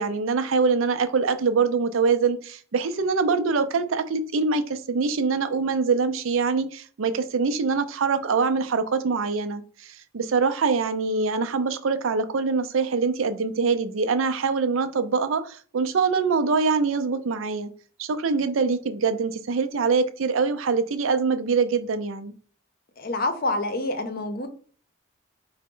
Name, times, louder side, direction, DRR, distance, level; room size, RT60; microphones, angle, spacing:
voice 1, 0.0-17.7 18.0-22.3, right 4 dB, 85° right, 0.5 m, -24 dB
voice 2, 23.0-24.5, left 2 dB, 50° left, 0.6 m, -27 dB
4.8 x 2.1 x 3.7 m
head